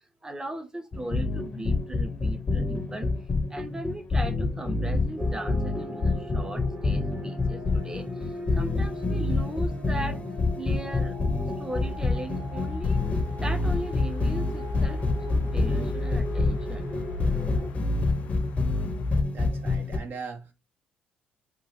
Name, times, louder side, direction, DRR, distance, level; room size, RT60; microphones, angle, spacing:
voice 1, 0.0-3.1 3.5-10.2 10.6-11.1 11.6-13.0 13.4-16.9, right 2 dB, 15° right, 0.7 m, -38 dB
sound 1, 0.9-20.0, left 3 dB, 30° left, 0.6 m, -28 dB
sound 2, 5.2-17.7, equal, 40° right, 1.0 m, -41 dB
sound 3, 11.7-19.2, left 2 dB, 70° left, 0.4 m, -35 dB
voice 2, 19.3-20.5, right 5 dB, 55° right, 0.7 m, -39 dB
3.0 x 2.3 x 3.2 m
hypercardioid pair, 50°, 4 cm